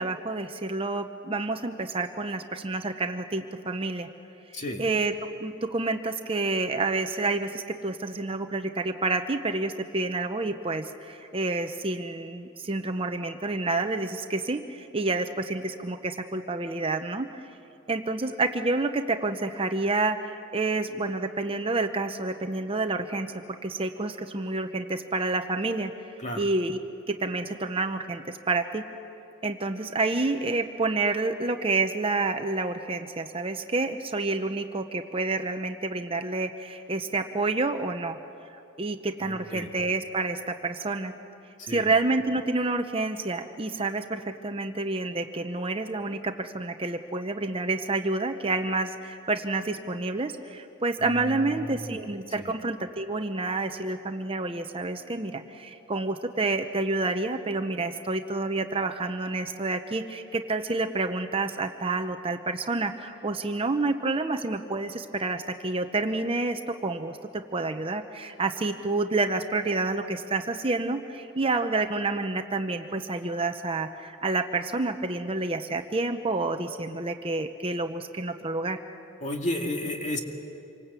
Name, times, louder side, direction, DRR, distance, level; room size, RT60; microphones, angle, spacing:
voice 1, 0.0-4.1 4.5-17.5 17.9-23.3 23.6-25.9 26.3-26.8 27.1-28.8 29.4-38.2 38.8-41.1 41.7-78.8, right 3 dB, 25° right, 7 dB, 0.8 m, -29 dB
voice 2, 4.5-4.8 26.2-26.5 39.2-39.7 41.6-41.9 51.0-52.0 52.4-52.5 79.2-80.2, left 1 dB, 35° left, 2 dB, 2.3 m, -33 dB
27.5 x 24.5 x 8.3 m, 2.8 s
head